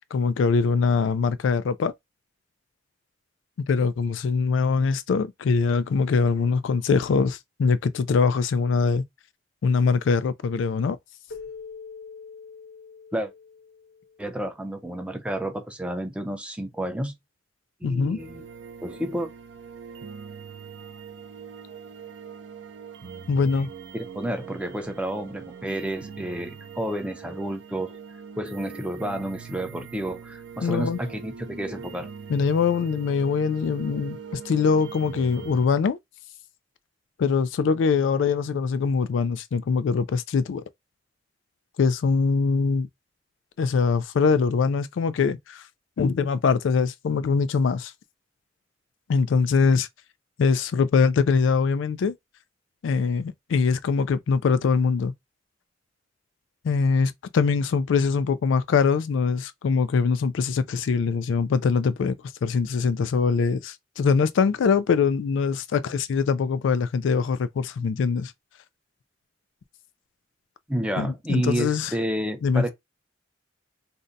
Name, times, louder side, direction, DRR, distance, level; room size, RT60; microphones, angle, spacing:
voice 1, 0.1-1.9 3.7-9.0 9.6-11.0 17.8-18.2 23.3-23.7 30.6-31.0 32.3-34.2 34.5-36.0 37.2-40.6 41.8-42.9 43.6-45.6 46.0-47.9 49.1-49.9 50.4-52.1 52.8-55.1 56.6-62.1 62.4-68.3 71.0-71.9 72.4-72.6, left 5 dB, 75° left, 0.3 m, -23 dB
Keyboard (musical), 11.3-14.5, left 5 dB, 60° left, 0.7 m, -43 dB
voice 2, 14.2-17.1 17.8-18.4 18.8-19.3 23.9-28.0 28.4-32.1 70.7-72.7, right 1 dB, 5° right, 0.5 m, -30 dB
sound 1, 18.2-35.7, right 6 dB, 65° right, 0.5 m, -42 dB
2.6 x 2.1 x 3.8 m
head